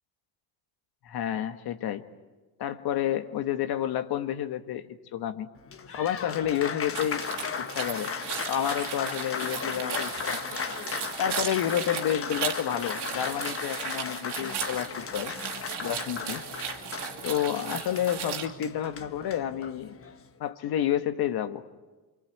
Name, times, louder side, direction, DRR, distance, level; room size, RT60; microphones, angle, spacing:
voice 1, 1.0-2.0 2.6-4.9 5.1-5.5 5.9-7.3 7.6-8.1 8.5-10.6 11.2-15.3 15.8-16.4 17.2-20.0 20.4-21.6, left 10 dB, 55° left, 9 dB, 1.7 m, -30 dB
Applause, 5.6-20.3, left 6 dB, 30° left, 1.4 m, -36 dB
sound 1, 6.9-18.4, right 9 dB, 65° right, 2.6 m, -37 dB
26.5 x 24.0 x 8.7 m, 1.2 s
supercardioid pair, 85°, 44 cm